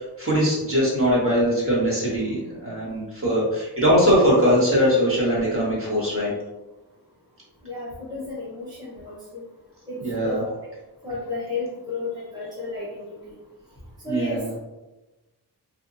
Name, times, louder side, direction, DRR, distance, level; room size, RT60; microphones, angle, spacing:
voice 1, 0.0-6.3 10.0-10.4 14.1-14.5, equal, 30° right, -6 dB, 1.4 m, -21 dB
voice 2, 7.6-9.4 9.9-10.5 11.0-13.3 14.0-14.6, left 3 dB, 10° right, -8 dB, 0.9 m, -33 dB
2.6 x 2.5 x 2.6 m, 1.1 s
cardioid pair, 45°, 40 cm